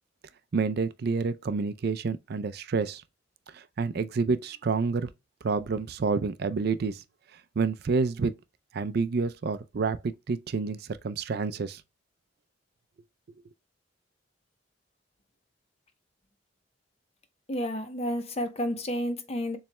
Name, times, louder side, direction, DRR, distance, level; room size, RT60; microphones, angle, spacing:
voice 1, 0.5-3.0 3.5-5.1 5.4-7.0 7.6-8.3 8.7-11.8, right 4 dB, 60° right, 0.4 m, -28 dB
voice 2, 17.5-19.6, equal, 35° left, 0.8 m, -31 dB
7.0 x 3.2 x 2.2 m
head